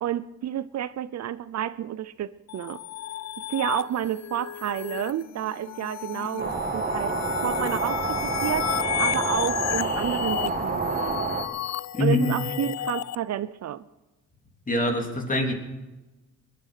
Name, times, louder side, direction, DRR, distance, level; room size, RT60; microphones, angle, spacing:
voice 1, 0.0-2.8 3.5-7.2 7.4-11.2 12.0-13.9, right 11 dB, 60° right, 15 dB, 0.7 m, -30 dB
sound 1, 2.5-13.2, left 11 dB, 60° left, 0.6 m, -33 dB
sound 2, 6.4-11.4, right 3 dB, 30° right, 2.3 m, -28 dB
voice 2, 11.9-12.3 14.7-15.5, left 2 dB, 25° left, 2 dB, 3.3 m, -24 dB
20.5 x 11.0 x 5.9 m, 1.1 s
cardioid pair, 90°, 30 cm